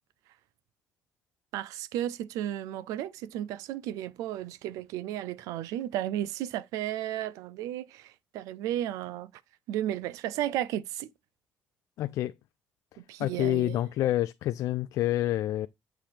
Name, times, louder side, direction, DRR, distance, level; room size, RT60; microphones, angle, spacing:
voice 1, 1.5-9.3 9.7-11.1 13.0-13.8, right 12 dB, 85° right, 0.5 m, -34 dB
voice 2, 12.0-12.3 12.9-15.7, left 14 dB, 75° left, 0.4 m, -28 dB
7.6 x 2.8 x 5.0 m
supercardioid pair, 70°, 6 cm